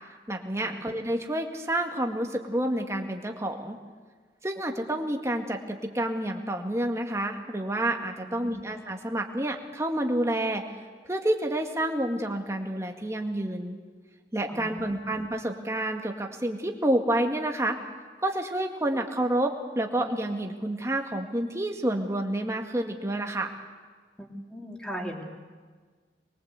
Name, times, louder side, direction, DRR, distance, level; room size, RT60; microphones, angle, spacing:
voice 1, 0.3-3.8 4.4-10.6 11.1-13.8 14.3-17.8 18.2-23.5, right 1 dB, 15° right, 3 dB, 1.9 m, -29 dB
voice 2, 8.2-8.6 14.5-15.0 24.2-25.2, equal, 5° left, 1 dB, 2.9 m, -39 dB
24.0 x 22.0 x 8.2 m, 1.5 s
head